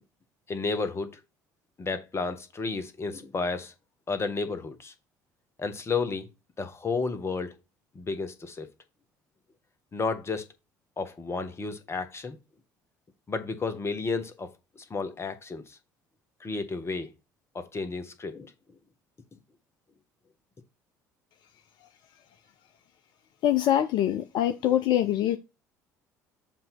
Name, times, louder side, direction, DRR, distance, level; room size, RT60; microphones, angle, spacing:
voice 1, 0.5-1.2 1.8-3.7 4.1-4.9 5.6-6.3 6.6-7.5 7.9-8.7 9.9-10.5 11.0-12.4 13.3-15.8 16.4-17.1 17.5-18.5, left 4 dB, 30° left, 1.3 m, -32 dB
voice 2, 23.4-25.4, left 12 dB, 55° left, 0.6 m, -24 dB
7.5 x 2.8 x 5.8 m
figure-of-eight pair, 60°, 9 cm